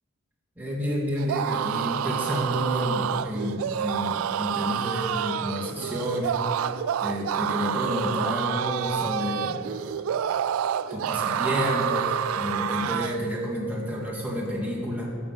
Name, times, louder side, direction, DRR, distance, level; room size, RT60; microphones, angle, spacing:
voice 1, 0.6-6.4 7.0-9.6 10.9-15.1, equal, 10° right, -4 dB, 1.9 m, -30 dB
sound 1, 1.2-13.3, right 9 dB, 90° right, 0.3 m, -28 dB
13.0 x 5.6 x 7.2 m, 2.7 s
head